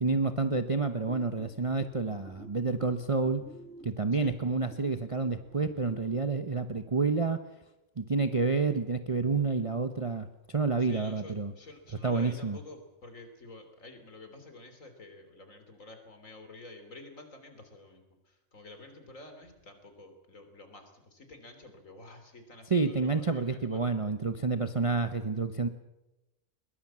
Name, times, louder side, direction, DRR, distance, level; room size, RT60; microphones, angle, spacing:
voice 1, 0.0-3.4 3.8-7.4 8.0-11.5 12.0-12.6 22.7-25.7, right 4 dB, 30° right, 8 dB, 0.9 m, -29 dB
sound 1, 1.1-6.1, equal, 5° left, 2.3 m, -52 dB
voice 2, 10.8-23.8, left 2 dB, 75° left, 6 dB, 3.7 m, -50 dB
21.5 x 20.5 x 7.5 m, 0.97 s
omnidirectional pair, 1.4 m